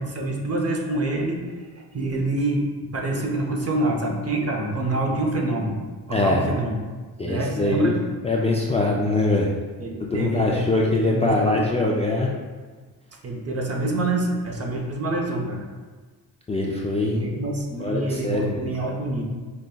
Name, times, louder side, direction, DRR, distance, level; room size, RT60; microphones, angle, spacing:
voice 1, 0.0-5.8 6.1-6.7 7.2-8.0 8.8-8.9 9.8-11.6 13.2-15.7 17.0-19.2, right 2 dB, 35° right, 0 dB, 0.7 m, -26 dB
voice 2, 6.1-6.4 7.2-7.9 8.2-9.5 10.0-12.3 16.5-17.2 17.8-18.7, left 2 dB, 15° left, -3 dB, 0.3 m, -23 dB
5.3 x 2.2 x 2.2 m, 1.4 s
supercardioid pair, 60°, 42 cm